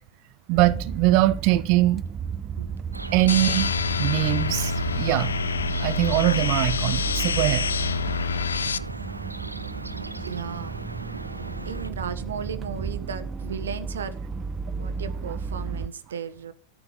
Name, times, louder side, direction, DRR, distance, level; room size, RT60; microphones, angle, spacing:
sound 1, 0.5-15.9, right 5 dB, 20° right, 0.5 m, -33 dB
voice 1, 0.5-2.0 3.1-3.7 4.0-5.3 5.8-7.6, right 16 dB, 45° right, 1.1 m, -22 dB
sound 2, 2.9-11.9, right 1 dB, 85° right, 0.9 m, -38 dB
sound 3, 3.3-8.8, left 6 dB, 70° left, 0.6 m, -27 dB
voice 2, 9.9-10.8 11.6-14.2 14.8-16.5, right 7 dB, 65° right, 1.5 m, -35 dB
13.5 x 6.7 x 8.9 m
figure-of-eight pair, 90°, 0 cm